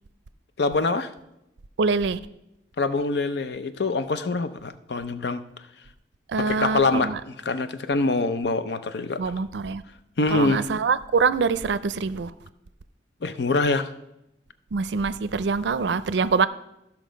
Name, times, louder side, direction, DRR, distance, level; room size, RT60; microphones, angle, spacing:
voice 1, 0.6-1.1 2.8-5.4 6.4-9.3 10.2-10.6 13.2-13.9, left 3 dB, 65° left, 12 dB, 0.6 m, -25 dB
voice 2, 1.8-2.2 6.3-7.2 9.2-9.8 10.3-12.3 14.7-16.5, right 5 dB, 75° right, 15 dB, 0.4 m, -24 dB
13.0 x 5.9 x 5.1 m, 0.87 s
head